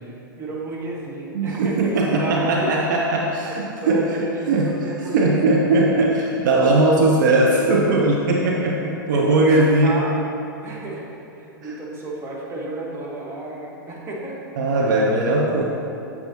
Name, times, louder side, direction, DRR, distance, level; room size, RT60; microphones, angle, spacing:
voice 1, 0.0-2.7 3.5-5.8 9.1-10.2 10.6-11.1 11.3-14.4, right 2 dB, 20° right, -3 dB, 1.4 m, -32 dB
voice 2, 1.3-4.1 4.5-10.0 11.6-11.7 14.6-15.6, right 2 dB, 60° right, -1 dB, 0.8 m, -19 dB
8.2 x 6.9 x 2.9 m, 2.8 s
figure-of-eight pair, 105°, 12 cm